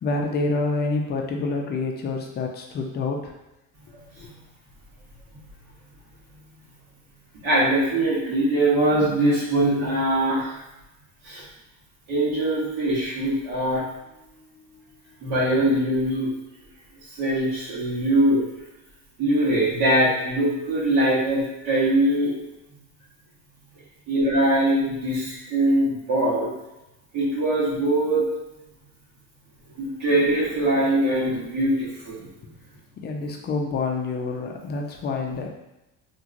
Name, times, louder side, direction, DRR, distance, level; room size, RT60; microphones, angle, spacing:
voice 1, 0.0-3.3 4.2-4.3 14.2-15.2 32.4-32.5 33.0-35.5, left 3 dB, 30° left, 2 dB, 0.4 m, -28 dB
voice 2, 7.4-10.6 11.2-11.4 12.1-13.8 15.2-16.3 17.2-18.4 19.2-22.3 24.1-26.5 27.1-28.2 29.8-32.3, right 1 dB, 65° right, -7 dB, 1.4 m, -22 dB
2.9 x 2.8 x 2.5 m, 0.94 s
cardioid pair, 130°, 37 cm